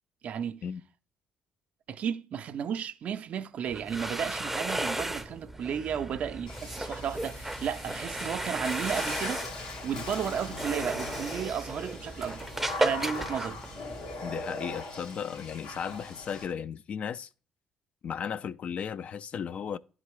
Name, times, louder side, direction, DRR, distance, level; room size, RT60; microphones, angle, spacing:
voice 1, 0.2-0.6 1.9-9.4 9.8-12.5 12.8-13.6, right 8 dB, 60° right, 0.5 m, -33 dB
sound 1, 3.6-14.3, right 1 dB, 5° right, 0.5 m, -35 dB
Water / Splash splatter, 6.5-16.5, left 3 dB, 90° left, 1.6 m, -40 dB
voice 2, 14.2-17.3 18.0-19.8, left 7 dB, 50° left, 0.3 m, -35 dB
11.0 x 3.8 x 3.1 m
hypercardioid pair, 55°, 3 cm